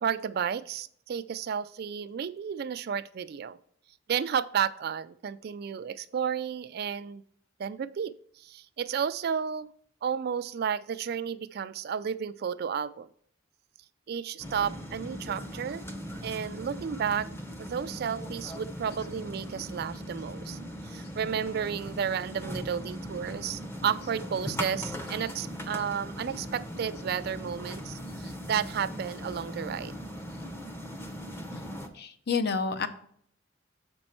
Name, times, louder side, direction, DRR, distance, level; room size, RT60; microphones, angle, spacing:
voice 1, 0.0-3.6 4.1-7.2 7.6-9.7 10.0-13.1 14.1-15.9 16.2-17.3 17.6-29.9, right 7 dB, 50° right, 14 dB, 0.3 m, -32 dB
sound 1, 14.4-31.9, equal, 10° left, 0.7 m, -39 dB
voice 2, 31.9-32.9, left 5 dB, 55° left, 8 dB, 0.6 m, -30 dB
6.9 x 5.3 x 4.3 m, 0.63 s
head